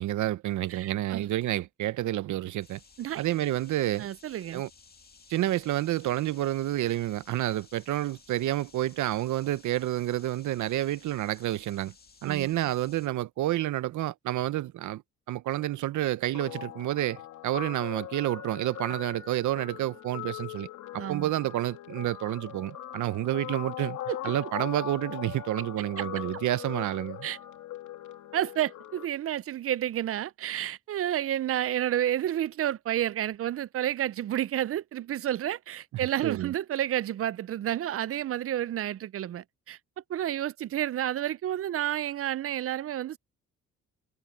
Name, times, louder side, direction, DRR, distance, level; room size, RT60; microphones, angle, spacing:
voice 1, 0.0-2.8 3.2-4.1 4.5-4.7 5.3-11.9 12.2-15.0 15.3-20.7 20.9-24.0 24.2-27.3 35.9-36.5, right 14 dB, 75° right, 0.9 m, -29 dB
voice 2, 0.7-1.3 3.0-3.3 4.0-4.6 12.2-12.5 21.0-21.3 24.1-24.3 26.0-26.1 27.2-27.4 28.3-39.8 40.1-43.2, right 12 dB, 50° right, 0.5 m, -30 dB
sound 1, 2.6-13.1, left 5 dB, 30° left, 2.1 m, -57 dB
Guitar, 16.3-29.1, left 11 dB, 80° left, 2.5 m, -40 dB
cardioid pair, 90°, 30 cm